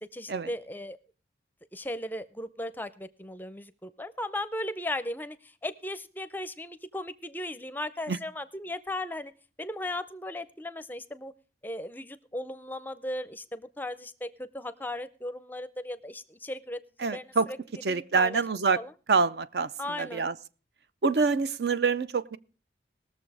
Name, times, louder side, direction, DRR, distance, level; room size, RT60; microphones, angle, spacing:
voice 1, 0.0-1.0 1.7-9.3 9.6-11.3 11.6-17.6 17.9-18.4 18.7-18.9 19.8-20.2, left 1 dB, 10° left, 15 dB, 0.5 m, -37 dB
voice 2, 17.0-17.5 17.8-18.8 19.1-19.7 20.0-20.3 21.0-22.4, right 4 dB, 60° right, 15 dB, 0.5 m, -26 dB
19.5 x 6.9 x 4.8 m, 0.37 s
head